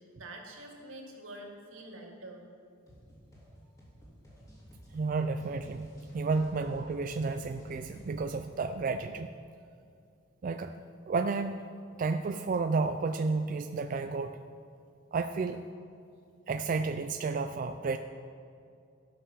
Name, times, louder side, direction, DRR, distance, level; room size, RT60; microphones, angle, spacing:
voice 1, 0.0-2.4 3.6-3.7, right 1 dB, 85° right, 0 dB, 1.9 m, -46 dB
sound 1, 2.9-8.5, equal, 15° left, 2.7 m, -53 dB
voice 2, 4.9-5.9 6.1-9.3 10.4-10.7 11.1-11.6 12.0-14.4 15.1-15.6 16.5-18.0, right 4 dB, 40° right, 7 dB, 0.3 m, -31 dB
13.5 x 6.7 x 5.7 m, 2.4 s
head